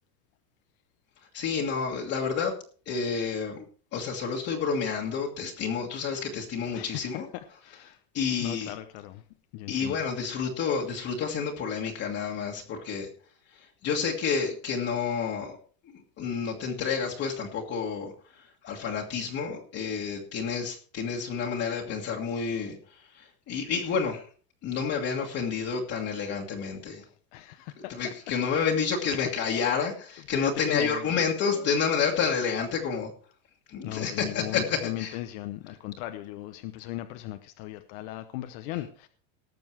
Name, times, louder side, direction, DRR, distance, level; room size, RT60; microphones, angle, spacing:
voice 1, 1.3-2.5 2.9-3.6 3.9-7.3 8.1-8.7 9.7-13.1 13.5-15.6 15.9-24.2 24.6-27.0 27.9-33.1 33.7-35.2, left 6 dB, 35° left, 1.9 m, -29 dB
voice 2, 6.7-8.0 8.4-9.2 9.5-10.0 27.0-28.7 29.1-29.3 29.6-29.8 30.3-31.2 31.5-31.7 33.8-39.1, left 15 dB, 55° left, 1.0 m, -37 dB
18.5 x 7.0 x 4.7 m
supercardioid pair, 150°, 42 cm